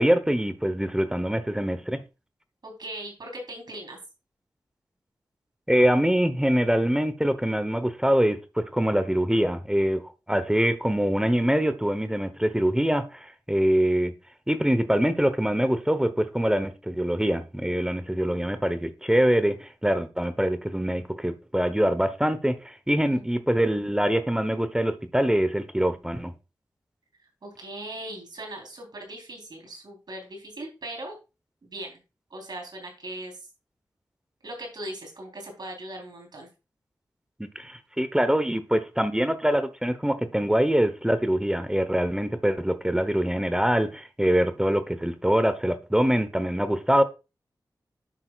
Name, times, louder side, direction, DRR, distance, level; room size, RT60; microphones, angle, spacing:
voice 1, 0.0-2.0 5.7-10.0 10.3-14.1 14.5-26.3 37.5-47.0, equal, 10° right, 1.0 m, -24 dB
voice 2, 2.6-4.0 23.1-23.3 27.4-31.2 31.6-32.0 32.3-33.5 34.4-36.5, right 1 dB, 65° right, 3.8 m, -39 dB
10.0 x 6.7 x 2.4 m
cardioid pair, 50°, 8 cm